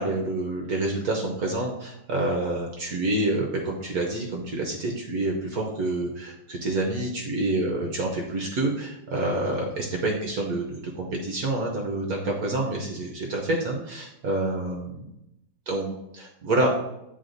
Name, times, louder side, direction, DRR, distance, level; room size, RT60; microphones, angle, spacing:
voice 1, 0.0-15.0 15.7-16.7, right 2 dB, 60° right, 0 dB, 1.1 m, -28 dB
9.3 x 4.0 x 2.6 m, 0.86 s
omnidirectional pair, 2.1 m